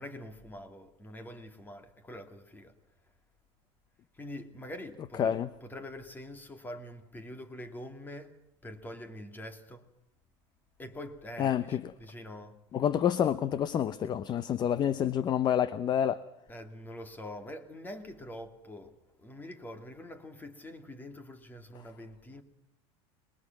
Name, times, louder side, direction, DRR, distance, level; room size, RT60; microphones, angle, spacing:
voice 1, 0.0-2.7 4.1-8.4 8.6-9.9 10.8-12.6 16.5-22.4, left 1 dB, 15° left, 2.7 m, -45 dB
voice 2, 5.2-5.5 11.4-11.8 12.7-16.2, left 9 dB, 30° left, 0.8 m, -28 dB
30.0 x 21.5 x 6.0 m
supercardioid pair, 140°, 14 cm